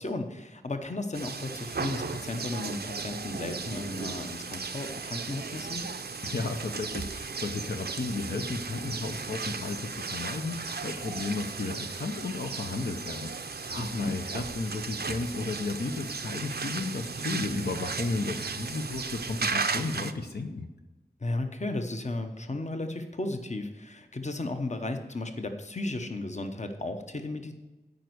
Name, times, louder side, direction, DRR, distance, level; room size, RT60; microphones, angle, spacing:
voice 1, 0.0-5.8 13.8-14.2 21.2-27.5, left 2 dB, 45° left, 7 dB, 0.9 m, -34 dB
sound 1, 1.1-20.1, right 5 dB, 70° right, 0.5 m, -36 dB
voice 2, 6.2-20.7, left 3 dB, 70° left, 4 dB, 0.8 m, -34 dB
9.1 x 5.2 x 8.0 m, 1.1 s
wide cardioid pair, 55°, 17 cm